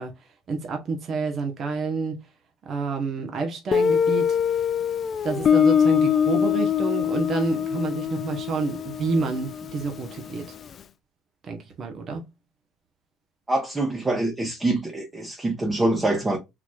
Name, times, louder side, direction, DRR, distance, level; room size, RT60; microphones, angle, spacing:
voice 1, 0.0-2.3 2.6-4.6 5.2-10.6 11.5-12.3, right 4 dB, 45° right, 1.1 m, -29 dB
Guitar, 3.7-10.4, left 8 dB, 45° left, 0.3 m, -23 dB
voice 2, 13.5-16.4, right 2 dB, 20° right, 1.1 m, -25 dB
3.9 x 3.1 x 2.4 m
supercardioid pair, 90°, 0 cm